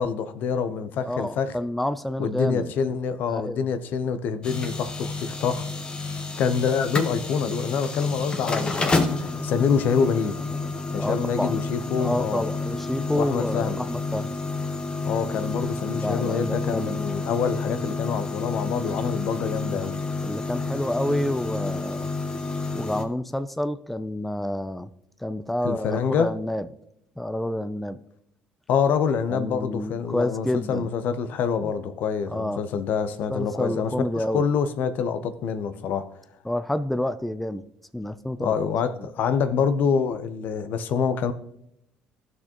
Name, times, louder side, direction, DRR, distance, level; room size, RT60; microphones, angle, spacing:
voice 1, 0.0-1.6 2.2-5.7 6.4-10.4 10.9-12.4 13.1-13.8 15.0-20.0 25.6-26.3 28.7-36.1 38.4-41.3, left 6 dB, 65° left, 0.8 m, -26 dB
voice 2, 1.0-2.7 3.3-3.6 11.0-11.6 12.0-14.3 15.9-17.0 20.2-22.1 22.7-24.9 25.2-26.7 27.2-28.0 29.3-30.9 31.6-31.7 32.3-32.6 33.3-34.4 36.5-37.6 37.9-38.5, left 1 dB, 5° left, 0.4 m, -29 dB
sound 1, 4.4-23.0, left 3 dB, 25° left, 1.3 m, -30 dB
15.5 x 6.3 x 3.0 m
supercardioid pair, 90°, 3 cm